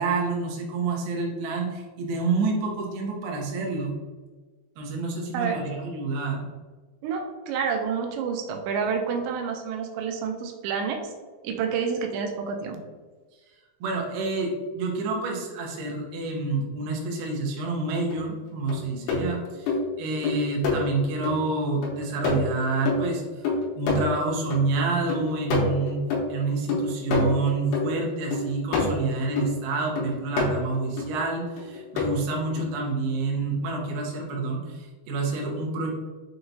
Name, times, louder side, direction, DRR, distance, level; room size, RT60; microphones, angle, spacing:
voice 1, 0.0-3.9 4.8-6.5 13.8-23.2 23.7-26.0 26.3-35.9, right 3 dB, 75° right, -1 dB, 2.4 m, -28 dB
voice 2, 7.0-11.1 11.4-12.8, right 6 dB, 90° right, 4 dB, 2.8 m, -29 dB
sound 1, 18.1-18.2 18.7-21.4 21.8-24.6 24.9-29.6 30.0-31.1 31.6-32.1 32.6-32.7, left 3 dB, 80° left, 2.9 m, -27 dB
6.8 x 2.9 x 2.6 m, 1.3 s
omnidirectional pair, 4.9 m